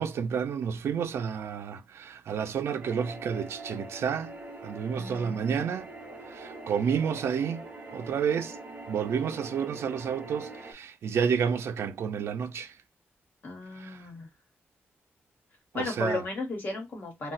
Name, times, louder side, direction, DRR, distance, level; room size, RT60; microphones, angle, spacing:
voice 1, 0.0-4.3 4.6-5.9 6.3-8.6 8.9-12.8 13.8-14.0 15.7-16.2, right 7 dB, 85° right, 0.4 m, -30 dB
sound 1, 2.8-10.7, right 2 dB, 40° right, 0.7 m, -43 dB
voice 2, 4.9-5.6 13.4-14.3 15.7-17.3, left 2 dB, 55° left, 1.2 m, -35 dB
2.3 x 2.0 x 3.8 m
wide cardioid pair, 150°, 4 cm